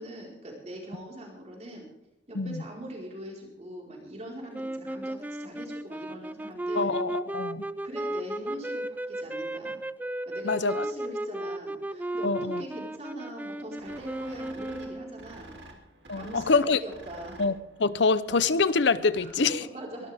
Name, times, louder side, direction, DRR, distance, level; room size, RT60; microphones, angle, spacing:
voice 1, 0.0-1.9 2.3-6.9 7.8-9.8 10.3-15.5 16.1-17.4 19.2-19.4 19.7-20.1, right 1 dB, 35° right, -2 dB, 4.6 m, -42 dB
sound 1, 4.5-15.3, right 1 dB, 10° right, 0.4 m, -35 dB
voice 2, 6.8-7.6 10.4-10.9 12.2-12.6 16.1-16.8 17.4-17.5 17.8-19.6, left 4 dB, 70° left, 16 dB, 0.7 m, -25 dB
sound 2, 13.8-19.5, right 2 dB, 65° right, 2.8 m, -50 dB
23.0 x 13.0 x 3.6 m, 0.91 s
head